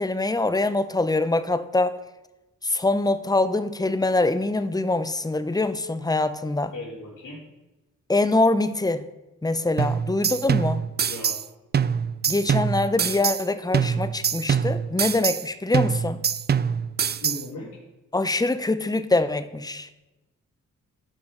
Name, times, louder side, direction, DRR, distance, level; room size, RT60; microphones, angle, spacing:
voice 1, 0.0-1.9 2.6-6.7 8.1-9.1 9.4-10.8 12.3-16.2 18.1-19.9, left 2 dB, 10° left, 12 dB, 0.7 m, -24 dB
voice 2, 6.7-7.4 11.0-11.4 17.2-17.7, left 2 dB, 60° left, -9 dB, 3.7 m, -37 dB
sound 1, 9.8-11.5 11.7-13.5 13.7-15.5 15.7-17.5, right 7 dB, 30° right, 0.4 m, -24 dB
13.0 x 5.7 x 3.9 m, 1.0 s
cardioid pair, 50°, 33 cm